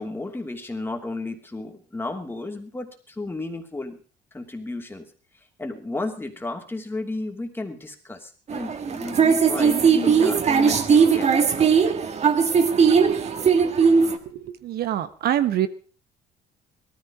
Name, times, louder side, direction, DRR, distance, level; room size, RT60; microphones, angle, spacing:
voice 1, 0.0-4.0 4.3-5.1 5.6-11.7, left 2 dB, 15° left, 4 dB, 2.8 m, -33 dB
sound 1, 8.5-14.2, right 6 dB, 40° right, 1.8 m, -19 dB
voice 2, 14.2-15.7, right 11 dB, 65° right, 12 dB, 1.2 m, -25 dB
18.0 x 14.0 x 5.0 m, 0.39 s
cardioid pair, 110°, 17 cm